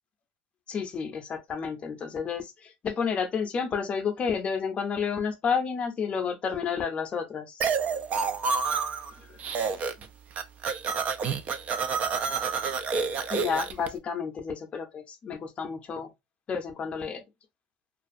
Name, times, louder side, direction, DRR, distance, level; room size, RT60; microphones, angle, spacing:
voice 1, 0.7-7.6 9.3-9.4 13.3-16.1 16.5-17.2, left 6 dB, 35° left, 0.5 m, -31 dB
sound 1, 7.6-9.1 9.4-10.1 10.3-13.9, right 5 dB, 40° right, 0.4 m, -28 dB
2.5 x 2.4 x 2.4 m
supercardioid pair, 110°, 4 cm